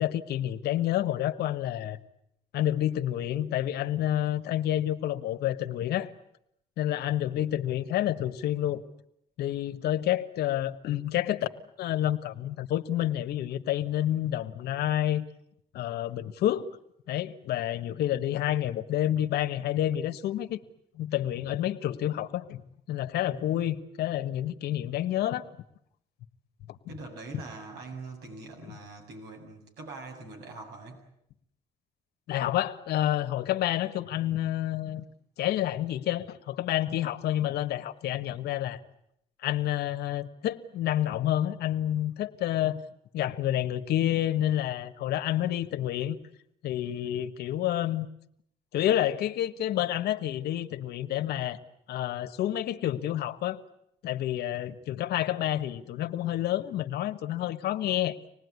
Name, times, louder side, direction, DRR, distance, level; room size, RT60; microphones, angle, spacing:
voice 1, 0.0-2.0 2.5-6.1 6.8-8.8 9.4-11.5 11.8-15.2 15.7-16.7 17.1-20.6 20.9-22.6 22.9-25.4 26.7-26.8 27.3-27.4 32.3-35.0 35.4-38.8 39.4-42.8 43.1-46.2 46.6-48.1 48.7-51.6 51.9-53.6 54.0-58.2, left 12 dB, 75° left, 9 dB, 1.5 m, -29 dB
voice 2, 26.9-31.0, right 3 dB, 80° right, 2 dB, 7.9 m, -43 dB
26.0 x 19.5 x 9.7 m, 0.76 s
cardioid pair, 110°, 17 cm